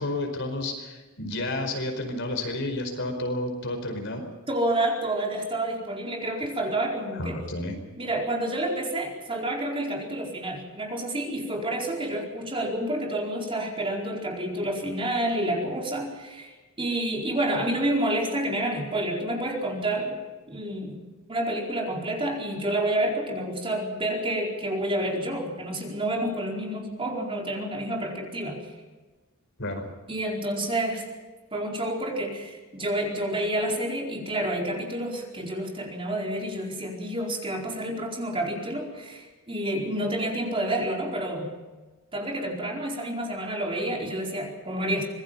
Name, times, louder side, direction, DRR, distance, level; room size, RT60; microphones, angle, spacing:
voice 1, 0.0-4.2 7.1-7.7 29.6-29.8 30.9-31.0, left 1 dB, 60° left, 5 dB, 5.0 m, -31 dB
voice 2, 4.5-7.4 8.0-20.2 20.5-21.0 21.3-28.6 30.1-31.0 31.5-41.5 42.1-45.1, right 1 dB, 25° right, 0 dB, 4.6 m, -29 dB
26.0 x 20.5 x 5.8 m, 1.2 s
head